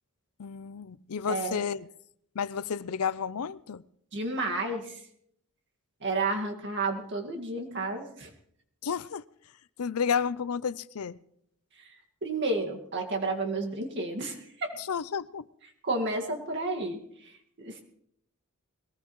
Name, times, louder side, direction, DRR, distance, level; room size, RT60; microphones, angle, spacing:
voice 1, 0.4-1.9 2.3-3.8 8.8-9.2 9.8-11.2 14.8-15.5, left 6 dB, 70° left, 0.5 m, -31 dB
voice 2, 1.3-1.6 4.1-5.0 6.0-8.3 12.2-14.7 15.8-17.0 17.6-17.8, right 2 dB, 55° right, 2.0 m, -31 dB
21.5 x 18.5 x 3.1 m
head